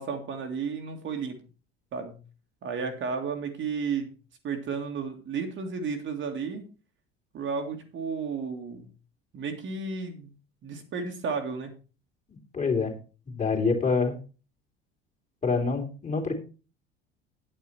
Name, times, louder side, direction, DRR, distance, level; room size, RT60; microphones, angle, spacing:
voice 1, 0.0-1.4 1.9-2.2 2.6-4.1 4.4-6.6 7.3-8.8 9.3-10.3 10.6-11.7, right 5 dB, 40° right, 4 dB, 2.0 m, -33 dB
voice 2, 12.5-12.9 13.2-14.2 15.4-16.3, left 4 dB, 25° left, 1 dB, 3.4 m, -26 dB
9.5 x 9.1 x 4.4 m, 0.34 s
figure-of-eight pair, 65°, 31 cm